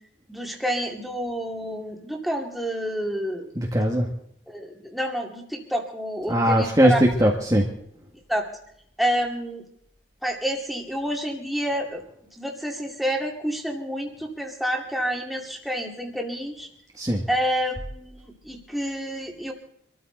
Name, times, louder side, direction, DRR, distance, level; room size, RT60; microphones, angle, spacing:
voice 1, 0.3-3.5 4.5-7.0 8.3-8.5 9.0-9.6 10.2-12.0 12.4-16.7 17.3-19.5, equal, ahead, 0 dB, 2.3 m, -28 dB
voice 2, 3.5-4.1 6.3-7.7 17.0-17.2, right 1 dB, 20° right, -1 dB, 1.6 m, -20 dB
25.5 x 13.0 x 3.9 m, 0.68 s
head